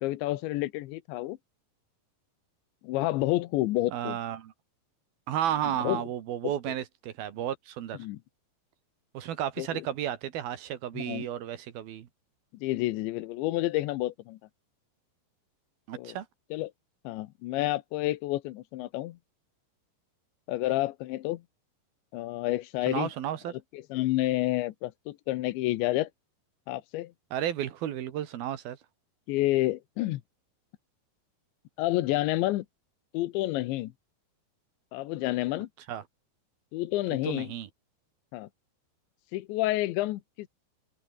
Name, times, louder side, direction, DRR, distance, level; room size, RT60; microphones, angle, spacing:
voice 1, 0.0-1.4 2.8-4.2 5.8-6.0 6.7-6.8 8.0-8.2 9.6-9.9 10.9-11.3 12.5-14.4 15.9-16.2 16.5-16.7 17.0-19.2 20.5-21.4 22.1-23.1 23.7-26.1 26.7-27.1 29.3-30.2 31.8-32.7 33.1-33.9 34.9-35.7 36.7-37.5 38.3-38.5 39.3-40.5, left 17 dB, 90° left, 3.3 m, -29 dB
voice 2, 3.9-4.5 5.3-8.1 9.1-12.1 15.9-16.3 22.9-23.5 27.3-28.8 35.9-36.0 37.3-37.7, right 11 dB, 65° right, 3.1 m, -33 dB
open air
omnidirectional pair, 5.1 m